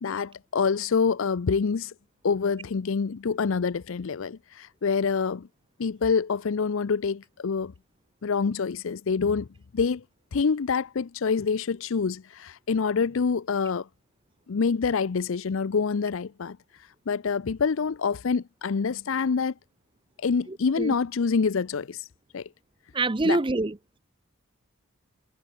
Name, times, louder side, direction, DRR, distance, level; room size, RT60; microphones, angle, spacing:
voice 1, 0.0-1.9 2.2-5.5 5.8-7.7 8.2-9.5 9.7-10.0 10.3-13.9 14.5-16.6 17.1-19.5 20.2-22.1 22.3-22.5 23.2-23.4, left 5 dB, 65° left, 0.5 m, -26 dB
voice 2, 20.5-20.9 22.9-23.8, right 2 dB, 20° right, 0.5 m, -26 dB
head